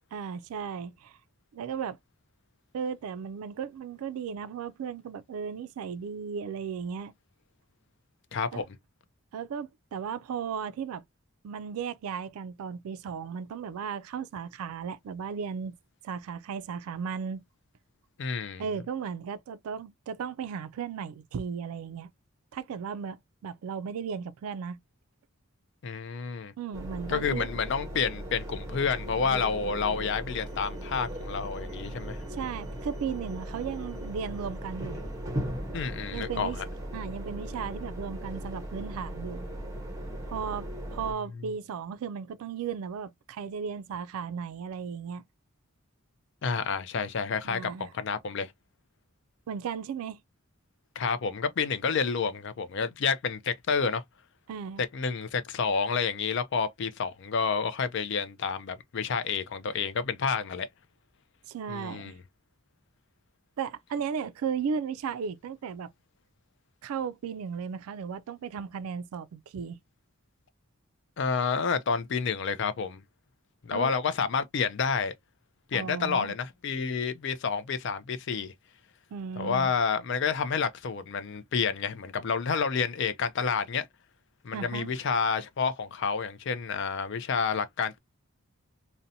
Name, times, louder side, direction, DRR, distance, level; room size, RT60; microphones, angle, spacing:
voice 1, 0.1-1.1 1.5-2.0 2.7-7.1 8.5-8.6 9.3-11.0 11.4-15.8 16.0-17.4 18.6-22.1 22.5-24.8 26.6-27.5 32.3-35.0 36.1-36.6 36.9-39.5 40.3-40.7 40.9-45.2 47.4-47.9 49.5-50.2 54.5-54.8 61.5-62.1 63.6-65.9 66.8-69.8 73.7-73.9 75.7-76.3 79.1-79.7 84.5-84.9, right 6 dB, 75° right, 0.3 m, -35 dB
voice 2, 8.3-8.6 18.2-18.6 25.8-26.5 27.1-32.2 35.7-36.6 46.4-48.5 51.0-54.0 54.9-60.7 61.7-62.2 71.2-73.0 73.6-75.1 75.7-78.5 79.4-83.9 84.4-88.0, left 5 dB, 55° left, 0.4 m, -29 dB
sound 1, 26.7-41.1, right 1 dB, 15° right, 0.6 m, -38 dB
2.5 x 2.1 x 2.6 m
head